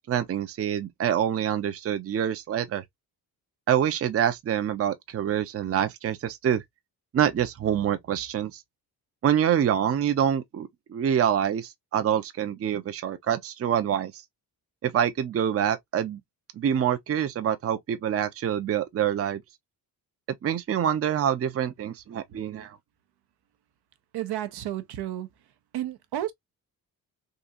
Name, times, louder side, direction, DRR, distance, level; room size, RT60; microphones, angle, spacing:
voice 1, 0.1-2.8 3.7-6.6 7.1-8.6 9.2-14.1 14.8-16.2 16.6-19.4 20.4-22.7, right 9 dB, 35° right, 0.6 m, -26 dB
voice 2, 24.1-25.3 25.7-26.3, right 12 dB, 80° right, 0.8 m, -31 dB
3.8 x 2.4 x 2.6 m
cardioid pair, 110°, 39 cm